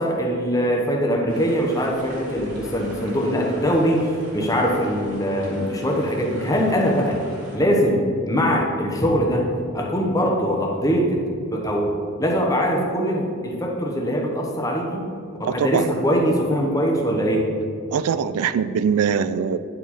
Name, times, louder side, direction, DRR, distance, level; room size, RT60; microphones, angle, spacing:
voice 1, 0.0-7.2 7.5-9.5 9.7-11.2 11.5-11.9 12.2-15.0 15.4-17.5, equal, 15° left, 0 dB, 0.9 m, -22 dB
sound 1, 1.3-7.6, equal, 35° right, 1.9 m, -42 dB
voice 2, 15.4-15.9 17.9-19.6, right 7 dB, 90° right, 14 dB, 0.3 m, -22 dB
9.9 x 4.6 x 4.2 m, 2.5 s
head